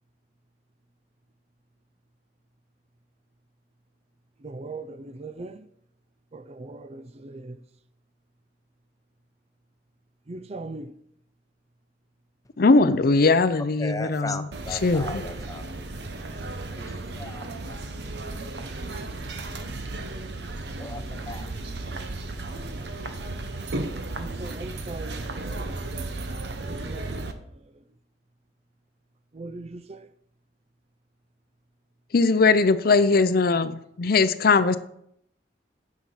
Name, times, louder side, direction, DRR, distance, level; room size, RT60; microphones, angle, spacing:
voice 1, 4.4-5.7 6.3-7.6 10.3-10.9 24.2-25.8 26.7-27.4 29.3-30.1, right 2 dB, 35° right, 0.5 m, -40 dB
voice 2, 12.6-15.2 32.1-34.8, left 3 dB, 55° left, 0.6 m, -20 dB
voice 3, 13.8-15.8 16.7-16.8 17.2-17.5 20.8-21.5, left 2 dB, 20° left, 0.7 m, -36 dB
sound 1, 14.5-27.3, right 2 dB, 65° right, 1.0 m, -34 dB
9.6 x 5.9 x 5.7 m
head